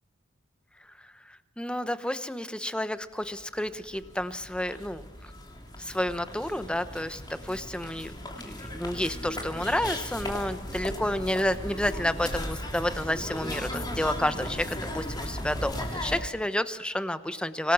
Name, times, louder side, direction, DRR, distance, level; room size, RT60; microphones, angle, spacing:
voice 1, 1.0-5.0 5.8-17.7, left 1 dB, 5° left, 11 dB, 0.9 m, -30 dB
sound 1, 3.4-3.5 3.7-16.2, left 1 dB, 20° left, 3.0 m, -37 dB
25.5 x 18.5 x 6.2 m, 1.1 s
head